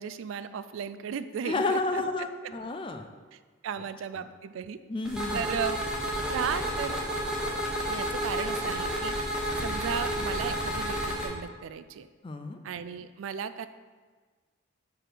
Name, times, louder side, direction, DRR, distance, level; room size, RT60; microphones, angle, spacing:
voice 1, 0.0-2.0 2.4-2.5 3.3-3.4 3.6-4.8 5.3-6.0 6.3-7.0 7.9-9.1 9.6-12.1 12.6-13.7, right 7 dB, 75° right, 12 dB, 0.3 m, -35 dB
voice 2, 1.4-3.1 4.9-5.4 12.2-12.6, left 3 dB, 25° left, 6 dB, 0.4 m, -31 dB
sound 1, 5.0-11.3, equal, 5° right, 1.0 m, -31 dB
4.9 x 4.8 x 5.9 m, 1.4 s
head